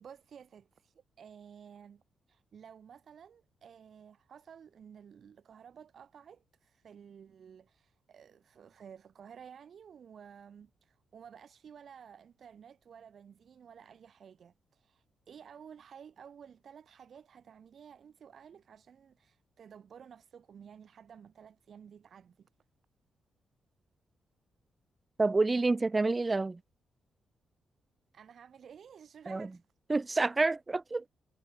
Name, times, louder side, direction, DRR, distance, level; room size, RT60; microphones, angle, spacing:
voice 1, 0.0-2.0 2.3-22.5 28.1-29.6, right 7 dB, 55° right, 5.0 m, -53 dB
voice 2, 25.2-26.6 29.3-29.5 29.9-31.0, right 3 dB, 20° right, 0.7 m, -28 dB
cardioid pair, 110°, 0 cm